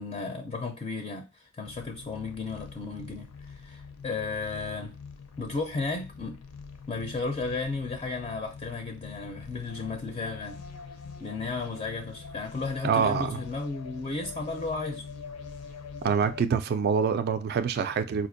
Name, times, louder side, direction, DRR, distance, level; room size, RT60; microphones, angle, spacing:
voice 1, 0.0-5.0 5.4-6.4 6.9-10.6 11.2-15.0, left 3 dB, 25° left, 0.4 m, -34 dB
sound 1, 1.6-16.4, left 5 dB, 80° left, 0.5 m, -44 dB
voice 2, 12.8-13.4 16.0-18.3, right 6 dB, 45° right, 0.3 m, -25 dB
4.1 x 2.5 x 2.5 m
head